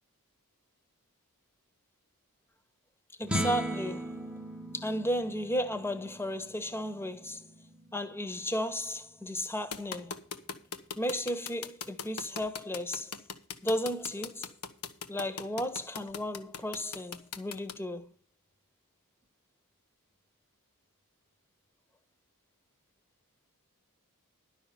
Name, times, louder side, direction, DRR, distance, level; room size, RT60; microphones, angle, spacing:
voice 1, 3.2-4.3 4.7-7.4 7.9-10.2 11.0-13.1 13.6-14.5 15.1-18.1, equal, 10° left, 1.1 m, -34 dB
sound 1, 3.2-9.6, right 1 dB, 5° right, 1.0 m, -39 dB
sound 2, 9.7-17.7, left 6 dB, 80° left, 1.3 m, -39 dB
11.5 x 6.4 x 6.8 m
head